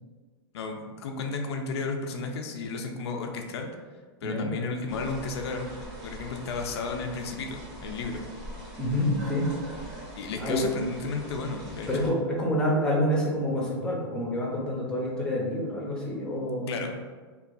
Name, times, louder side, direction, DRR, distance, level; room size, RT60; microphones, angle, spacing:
voice 1, 0.5-3.7 4.2-5.7 6.0-8.2 10.2-11.9 16.7-16.9, left 4 dB, 80° left, 3 dB, 0.4 m, -33 dB
sound 1, 4.9-12.1, equal, 40° right, 1.2 m, -42 dB
voice 2, 8.8-9.5 10.4-10.7 11.9-16.8, equal, 5° left, -4 dB, 0.7 m, -27 dB
2.9 x 2.2 x 2.5 m, 1.4 s
hypercardioid pair, 130°, 14 cm